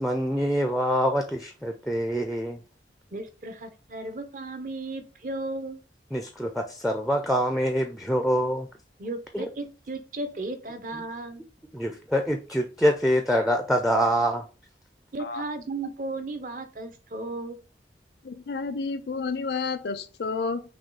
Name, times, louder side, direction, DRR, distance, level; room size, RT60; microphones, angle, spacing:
voice 1, 0.0-2.6 6.1-8.7 9.3-9.5 11.7-14.5, equal, ahead, 0.4 m, -25 dB
voice 2, 3.1-5.8 9.0-11.4 15.1-17.6, right 2 dB, 45° right, 0.7 m, -35 dB
voice 3, 18.2-20.6, left 4 dB, 70° left, 0.4 m, -30 dB
6.1 x 2.3 x 3.8 m
head